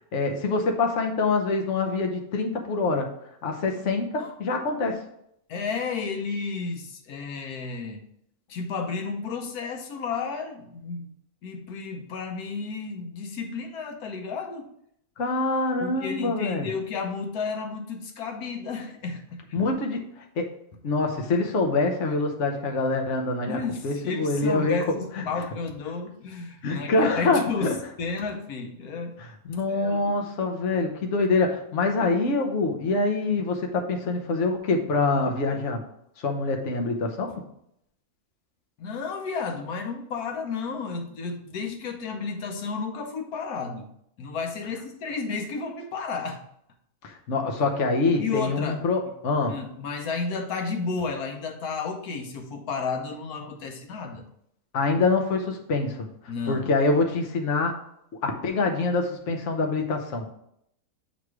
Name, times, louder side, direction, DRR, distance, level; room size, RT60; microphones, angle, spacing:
voice 1, 0.1-3.1 3.4-5.0 15.2-16.7 19.5-20.5 20.8-23.6 23.8-24.8 25.2-25.3 26.6-27.7 29.2-35.8 36.2-37.3 47.0-49.6 54.7-56.1 56.5-57.8 58.2-60.3, left 3 dB, 60° left, 3 dB, 1.2 m, -25 dB
voice 2, 5.5-8.0 8.5-11.1 11.4-14.7 15.8-19.4 23.5-27.7 28.0-29.2 29.7-30.3 38.8-43.9 44.2-46.4 48.2-48.8 49.1-49.2 49.5-54.2 56.3-56.7, left 4 dB, 85° left, 4 dB, 1.3 m, -32 dB
8.1 x 3.1 x 4.7 m, 0.73 s
omnidirectional pair, 1.5 m